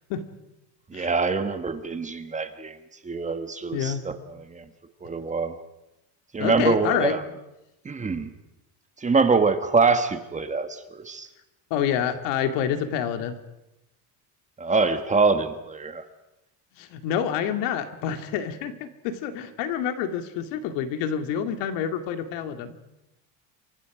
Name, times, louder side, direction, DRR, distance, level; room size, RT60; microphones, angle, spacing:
voice 1, 0.9-2.8 3.0-4.7 5.0-5.6 6.3-7.3 7.8-8.3 9.0-11.3 11.9-12.0 14.6-16.0, right 4 dB, 15° right, 9 dB, 1.5 m, -24 dB
voice 2, 3.7-4.0 6.4-7.2 11.7-13.4 16.8-22.9, left 8 dB, 80° left, 7 dB, 2.6 m, -28 dB
28.0 x 24.0 x 5.1 m, 0.93 s
cardioid pair, 150°, 43 cm